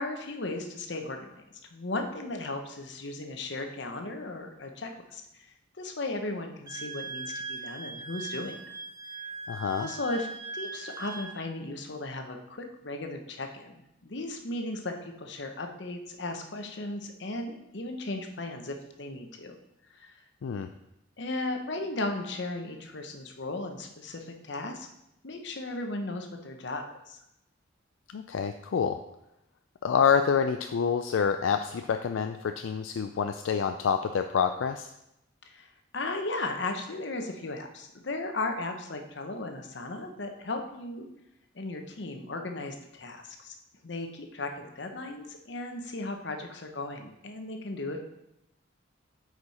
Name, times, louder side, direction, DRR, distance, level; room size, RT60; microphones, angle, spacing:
voice 1, 0.0-1.4 1.7-5.4 5.8-8.6 9.8-10.3 10.5-19.5 19.9-20.1 21.2-24.9 25.2-27.2 35.5-41.1 41.5-43.5 43.8-48.0, left 2 dB, 60° left, 4 dB, 0.9 m, -36 dB
Wind instrument woodwind instrument, 6.7-11.4, right 4 dB, 20° right, 0.5 m, -40 dB
voice 2, 9.5-9.9 20.4-20.7 28.1-29.0 29.8-34.9, left 6 dB, 80° left, 7 dB, 0.4 m, -27 dB
8.3 x 4.9 x 4.2 m, 0.85 s
head